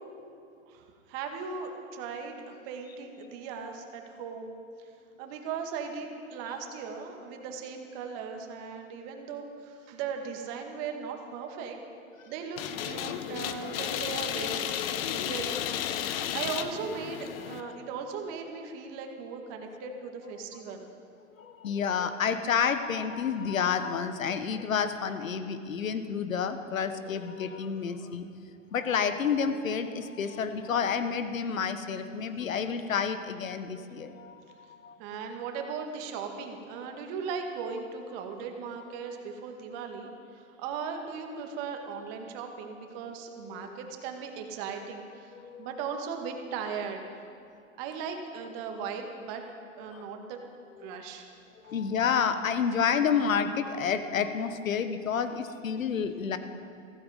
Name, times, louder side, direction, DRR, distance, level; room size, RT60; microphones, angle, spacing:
voice 1, 0.7-4.5 4.8-4.9 5.2-11.8 12.2-14.7 15.0-15.5 16.3-20.9 35.0-47.2 47.8-49.4 49.8-50.4 50.8-51.3 51.6-51.7, right 6 dB, 45° right, 4 dB, 2.1 m, -38 dB
sound 1, 12.6-17.6, left 10 dB, 45° left, 1.0 m, -33 dB
voice 2, 21.4-28.3 28.7-34.4 34.7-35.0 36.9-37.0 43.5-43.8 45.3-45.8 49.9-50.0 50.8-51.0 51.6-56.4, left 6 dB, 80° left, 10 dB, 1.2 m, -30 dB
15.5 x 15.0 x 5.2 m, 2.5 s
hypercardioid pair, 115°, 39 cm